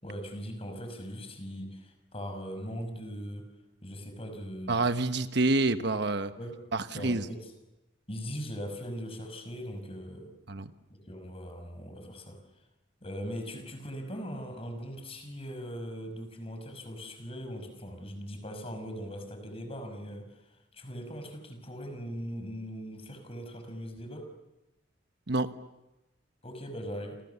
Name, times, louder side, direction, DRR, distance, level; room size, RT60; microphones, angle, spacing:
voice 1, 0.0-3.5 3.8-4.8 6.4-6.6 6.9-7.5 8.1-10.3 11.1-12.4 13.0-24.3 26.4-27.2, equal, 30° left, 6 dB, 5.7 m, -40 dB
voice 2, 4.7-6.3 6.7-7.3 10.5-10.7 25.3-25.5, right 2 dB, 60° right, 9 dB, 1.2 m, -27 dB
29.5 x 27.5 x 7.0 m, 0.98 s
head